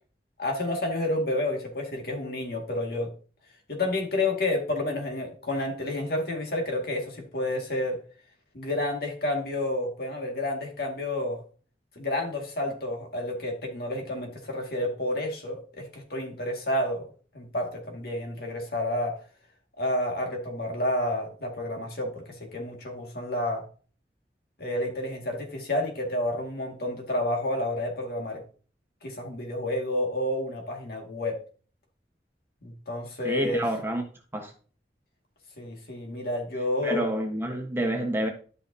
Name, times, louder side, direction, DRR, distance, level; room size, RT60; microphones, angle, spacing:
voice 1, 0.4-3.1 3.7-8.0 8.5-11.4 12.0-17.1 17.3-19.1 19.8-23.6 24.6-28.4 29.0-31.4 32.6-33.6 35.6-37.0, left 1 dB, 60° left, 2.1 m, -30 dB
voice 2, 33.2-34.0 34.3-34.5 36.8-38.3, right 1 dB, 15° right, 1.2 m, -28 dB
11.5 x 5.8 x 2.8 m
head